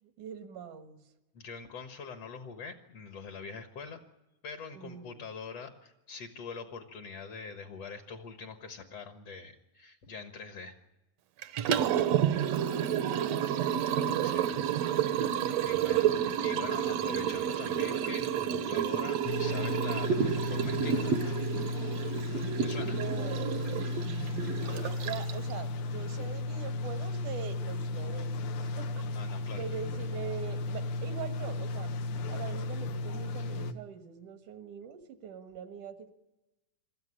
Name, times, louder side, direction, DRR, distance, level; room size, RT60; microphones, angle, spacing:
voice 1, 0.0-1.1 4.7-5.3 12.6-13.7 22.5-23.9 24.5-29.1 29.6-32.0 32.3-36.1, right 8 dB, 85° right, 7 dB, 3.1 m, -43 dB
voice 2, 1.3-4.0 4.4-10.8 14.2-14.6 15.3-21.1 22.6-23.0 29.1-29.6, left 5 dB, 60° left, 6 dB, 2.3 m, -44 dB
Liquid, 11.4-25.5, right 9 dB, 70° right, 1.8 m, -30 dB
sound 1, 19.3-33.7, left 2 dB, 85° left, 2.6 m, -34 dB
24.5 x 14.0 x 9.9 m, 1.0 s
omnidirectional pair, 3.4 m